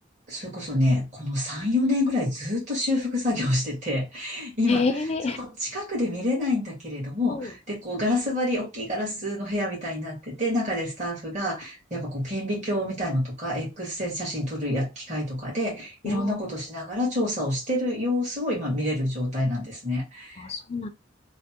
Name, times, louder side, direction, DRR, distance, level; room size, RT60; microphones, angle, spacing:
voice 1, 0.3-4.9 5.4-20.4, left 1 dB, 40° right, 1.7 m, -27 dB
voice 2, 4.7-5.4 7.3-7.5 16.0-16.4 20.4-20.9, left 4 dB, 35° left, 0.5 m, -27 dB
3.3 x 2.2 x 2.9 m
head